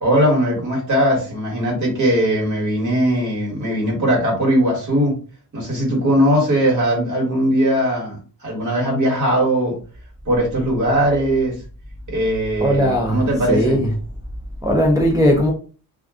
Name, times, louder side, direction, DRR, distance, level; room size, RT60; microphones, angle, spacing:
voice 1, 0.0-5.2 5.5-8.2 8.4-9.7 10.2-11.5 12.1-13.8, equal, 50° right, 1.4 m, -19 dB
voice 2, 12.6-13.2 13.5-13.9 14.6-15.5, equal, 10° right, 0.3 m, -17 dB
2.5 x 2.2 x 3.5 m
wide cardioid pair, 175°, 37 cm